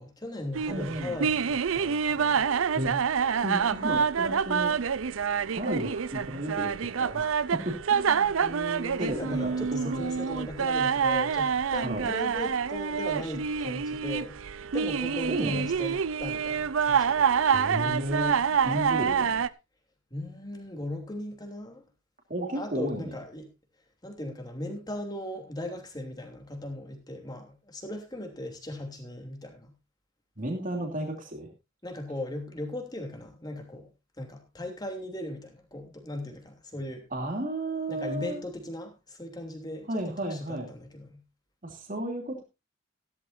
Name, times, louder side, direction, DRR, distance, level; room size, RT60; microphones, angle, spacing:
voice 1, 0.0-2.5 8.4-14.4 14.7-17.3 17.8-18.0 20.1-21.8 22.5-23.5 24.0-29.7 31.8-33.9 34.2-37.0 37.9-40.4 40.7-41.2, left 1 dB, 20° left, 3.0 m, -38 dB
sound 1, 0.6-19.5, right 6 dB, 85° right, 0.5 m, -27 dB
voice 2, 0.7-1.2 2.7-3.0 3.3-4.8 5.5-8.4 9.0-10.0 10.3-10.4 11.8-12.1 15.1-15.6 17.5-19.4 22.3-23.2 30.4-31.5 37.1-38.4 39.9-40.7 41.6-42.4, right 1 dB, 40° right, 2.9 m, -33 dB
15.0 x 13.0 x 2.7 m
head